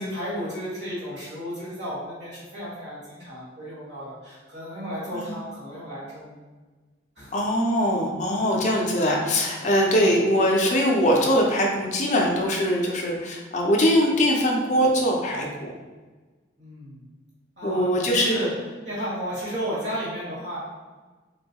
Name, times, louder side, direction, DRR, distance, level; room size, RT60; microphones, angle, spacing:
voice 1, 0.0-6.4 7.2-7.3 16.6-17.0 17.6-18.5 18.8-20.6, equal, 70° right, -8 dB, 1.5 m, -33 dB
voice 2, 7.3-15.7 17.6-18.4, equal, 40° left, 0 dB, 0.5 m, -22 dB
3.7 x 2.3 x 2.8 m, 1.3 s
head